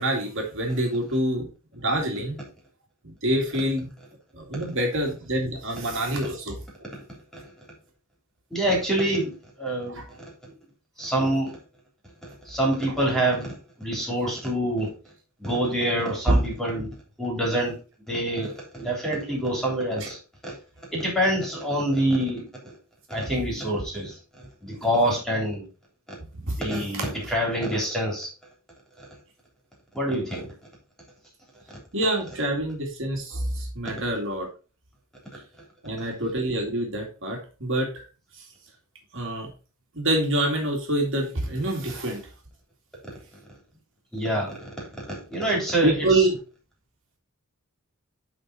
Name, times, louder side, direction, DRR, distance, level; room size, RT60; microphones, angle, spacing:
voice 1, 0.0-2.4 3.0-3.9 4.3-6.6 9.9-10.1 16.3-16.4 26.4-26.6 26.9-27.0 31.9-34.5 35.8-38.0 39.1-39.5 39.9-42.2 45.8-46.4, right 1 dB, 60° right, 0 dB, 2.3 m, -26 dB
voice 2, 8.5-10.5 11.0-11.6 12.2-14.9 15.4-17.8 18.1-20.2 20.4-20.5 20.9-22.5 23.1-24.2 24.6-25.7 26.4-28.3 29.0-29.1 29.9-30.5 33.8-33.9 36.0-36.1 44.1-44.5 45.1-46.3, right 1 dB, ahead, -2 dB, 3.3 m, -26 dB
10.5 x 4.1 x 4.1 m, 0.34 s
head